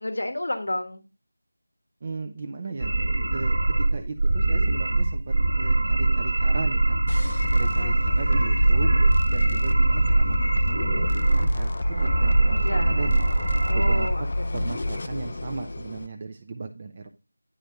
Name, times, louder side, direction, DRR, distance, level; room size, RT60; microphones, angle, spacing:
voice 1, 0.0-1.0 7.6-8.0 12.6-13.0 13.7-14.8, left 1 dB, 75° left, 7 dB, 1.4 m, -32 dB
voice 2, 2.0-2.9 3.3-7.0 7.5-8.9 9.3-13.2 13.7-14.3 14.5-17.1, right 3 dB, 25° right, 3 dB, 0.6 m, -36 dB
sound 1, 2.8-14.1, right 2 dB, 60° right, 1.2 m, -22 dB
sound 2, 7.1-16.1, left 2 dB, 40° left, 0.5 m, -28 dB
10.0 x 3.3 x 6.5 m, 0.29 s
figure-of-eight pair, 175°, 0 cm